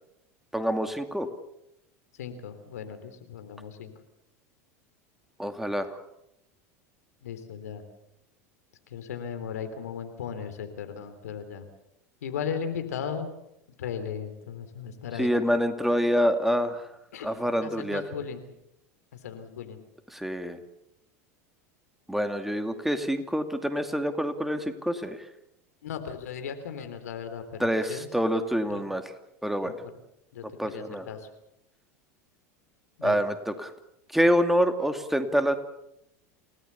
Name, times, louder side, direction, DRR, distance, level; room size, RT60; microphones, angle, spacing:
voice 1, 0.5-1.3 5.4-6.0 15.2-16.9 17.2-18.0 20.1-20.6 22.1-25.3 27.6-29.1 29.4-29.8 30.6-31.1 33.0-33.7 34.1-35.6, equal, 5° right, 7 dB, 2.4 m, -26 dB
voice 2, 2.2-3.9 7.2-7.8 8.9-11.7 12.2-13.3 13.8-15.3 17.1-18.4 19.2-19.8 25.8-28.1 28.7-28.8 29.6-29.7 30.3-31.3 33.0-33.2, left 7 dB, 80° left, 9 dB, 3.5 m, -36 dB
29.0 x 18.0 x 7.0 m, 0.84 s
hypercardioid pair, 90°, 8 cm